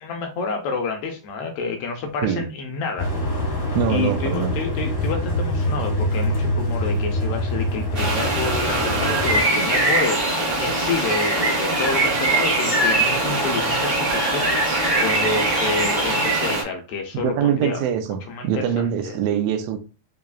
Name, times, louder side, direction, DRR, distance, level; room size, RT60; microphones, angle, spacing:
voice 1, 0.0-3.1 3.4-3.6 3.9-10.2 10.6-17.8 18.3-19.2, left 4 dB, 85° left, 1.3 m, -29 dB
sound 1, 3.0-9.4, left 1 dB, 65° left, 0.8 m, -24 dB
voice 2, 3.7-4.6 17.2-19.8, right 9 dB, 80° right, 1.4 m, -23 dB
sound 2, 7.9-16.6, right 2 dB, 55° right, 0.8 m, -21 dB
4.8 x 2.7 x 2.3 m
omnidirectional pair, 3.4 m